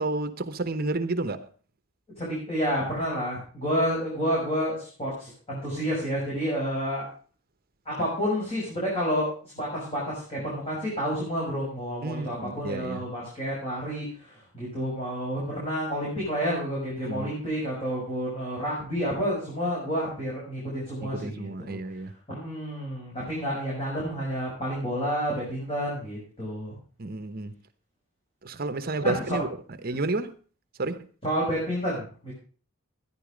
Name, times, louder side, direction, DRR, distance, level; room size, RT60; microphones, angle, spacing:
voice 1, 0.0-1.5 12.0-13.0 17.0-17.3 21.0-22.1 27.0-27.6 28.4-29.5 29.8-30.3 30.8-31.1, right 2 dB, 45° right, 1.0 m, -30 dB
voice 2, 2.2-7.0 7.8-21.8 22.3-26.7 29.0-29.4 31.2-32.3, equal, 30° left, 6.2 m, -30 dB
14.0 x 10.5 x 5.1 m
head